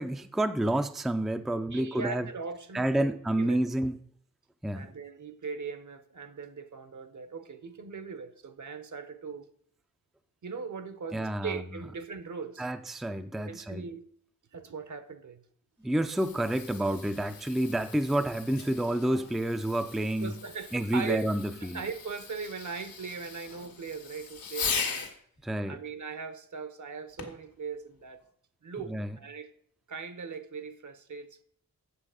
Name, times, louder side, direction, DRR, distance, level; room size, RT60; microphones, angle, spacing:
voice 1, 0.0-2.3 2.7-4.0 4.6-4.9 11.1-11.6 12.6-13.8 15.8-20.3 20.7-21.8 25.4-25.8 28.9-29.2, right 1 dB, ahead, 0.4 m, -29 dB
voice 2, 1.7-3.6 4.7-9.5 10.4-12.7 13.4-14.0 14.5-15.4 20.2-21.3 21.6-25.1 25.7-28.2 28.6-29.5 29.9-31.4, right 5 dB, 60° right, 1.0 m, -39 dB
Fireworks, 15.8-25.2 27.2-27.5 28.2-28.3, left 6 dB, 90° left, 1.8 m, -39 dB
8.5 x 6.9 x 4.9 m
wide cardioid pair, 105°, 34 cm